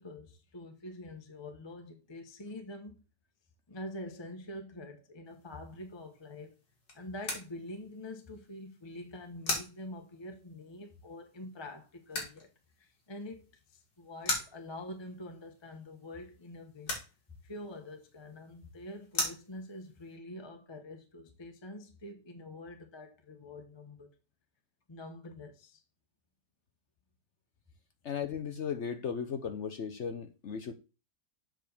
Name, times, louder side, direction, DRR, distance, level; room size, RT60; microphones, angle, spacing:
voice 1, 0.0-2.9 3.7-6.5 6.9-12.5 12.8-13.4 13.7-16.9 17.4-24.1 24.9-25.8, left 1 dB, 20° left, 1.0 m, -45 dB
sound 1, 5.3-20.1, left 2 dB, 85° left, 3.1 m, -42 dB
voice 2, 28.0-30.7, left 7 dB, 55° left, 0.8 m, -36 dB
7.7 x 3.8 x 6.6 m
omnidirectional pair, 1.8 m